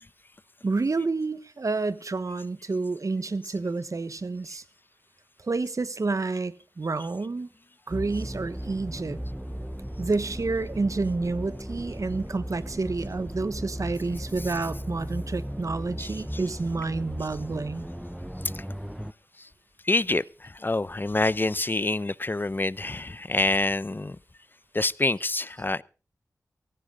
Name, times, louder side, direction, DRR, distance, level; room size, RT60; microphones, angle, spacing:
voice 1, 0.6-4.6 5.4-7.5 7.9-9.2 10.0-17.9, right 3 dB, 60° right, 1.2 m, -29 dB
sound 1, 7.9-19.1, equal, 5° right, 0.7 m, -36 dB
voice 2, 16.0-16.4 18.5-18.6 19.4-19.5 19.8-24.2 24.7-25.8, left 2 dB, 35° left, 0.6 m, -27 dB
17.5 x 15.0 x 3.8 m
cardioid pair, 40°, 6 cm